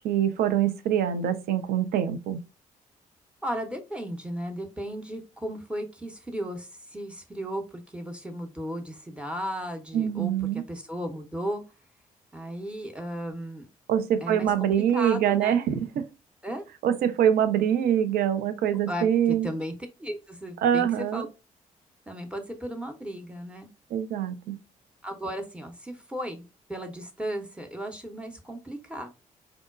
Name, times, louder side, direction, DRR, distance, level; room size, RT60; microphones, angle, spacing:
voice 1, 0.0-2.4 9.9-10.6 13.9-16.1 16.8-19.5 20.6-21.3 23.9-24.6, right 9 dB, 55° right, 0.4 m, -24 dB
voice 2, 3.4-11.6 12.3-13.7 14.2-15.7 16.4-16.7 18.9-19.7 20.0-21.3 22.1-23.7 25.0-26.4 26.7-29.1, equal, 5° right, 0.6 m, -35 dB
3.8 x 2.1 x 2.3 m
figure-of-eight pair, 40°, 18 cm